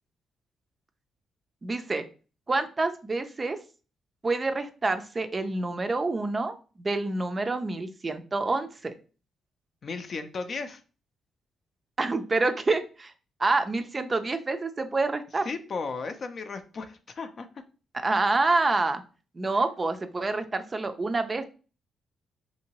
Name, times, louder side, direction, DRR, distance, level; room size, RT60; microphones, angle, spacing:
voice 1, 1.6-2.0 2.5-3.6 4.2-8.9 12.0-13.1 13.4-15.5 18.0-19.0 19.4-21.4, right 3 dB, 30° right, 9 dB, 0.4 m, -27 dB
voice 2, 9.8-10.8 15.4-17.5 19.5-19.6, left 4 dB, 50° left, 8 dB, 0.4 m, -35 dB
2.8 x 2.6 x 2.9 m, 0.35 s
cardioid pair, 75°, 0 cm